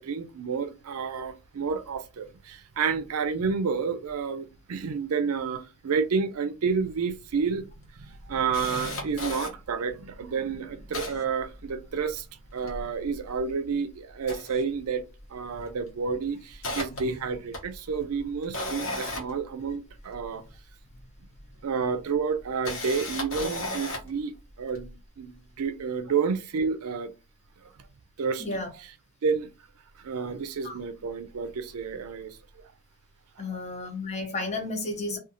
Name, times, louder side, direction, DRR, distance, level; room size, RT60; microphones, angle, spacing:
voice 1, 0.0-7.6 8.0-12.3 12.5-15.1 15.3-20.4 21.6-24.3 24.6-27.1 28.2-28.5 29.2-29.5 30.0-32.4, right 5 dB, 80° right, 0.5 m, -30 dB
Camera, 6.9-7.0 7.3-7.4 7.9-9.5 10.1-10.2 10.5-12.1 12.5-13.7 14.1-15.3 15.5-15.8 16.2-20.3 21.3-21.4 22.4-24.2 24.7-24.9, left 1 dB, 65° left, 1.0 m, -36 dB
voice 2, 28.4-28.7 30.6-30.7 33.4-35.2, left 2 dB, 30° left, 0.7 m, -33 dB
2.5 x 2.4 x 2.8 m
head